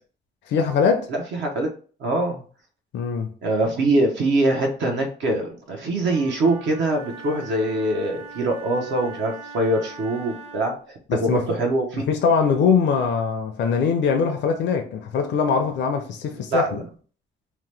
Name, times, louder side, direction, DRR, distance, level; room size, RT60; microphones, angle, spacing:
voice 1, 0.5-1.1 2.9-3.3 11.1-11.4 11.9-16.8, left 6 dB, 65° left, 0.5 m, -22 dB
voice 2, 1.1-1.7 2.0-2.4 3.4-12.0 16.5-16.8, right 2 dB, 70° right, 0.7 m, -23 dB
Wind instrument woodwind instrument, 6.0-10.9, right 4 dB, 35° right, 0.9 m, -41 dB
2.9 x 2.1 x 3.2 m
cardioid pair, 90°, 20 cm